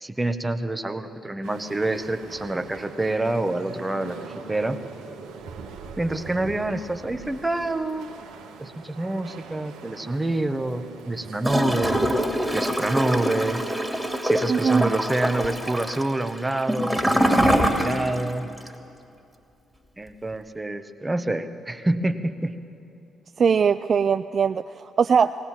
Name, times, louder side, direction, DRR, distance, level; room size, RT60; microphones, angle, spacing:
voice 1, 0.0-4.8 6.0-8.1 8.6-12.1 12.5-13.6 14.2-18.5 20.0-22.6, right 2 dB, 15° right, 9 dB, 1.3 m, -27 dB
sound 1, 1.4-11.9, right 5 dB, 75° right, 1.7 m, -42 dB
Gurgling / Toilet flush, 11.4-18.3 18.6-18.7, equal, ahead, 2.6 m, -24 dB
voice 2, 14.5-14.9 23.4-25.4, right 6 dB, 50° right, 10 dB, 0.4 m, -21 dB
19.0 x 19.0 x 7.5 m, 2.7 s
hypercardioid pair, 45°, 0 cm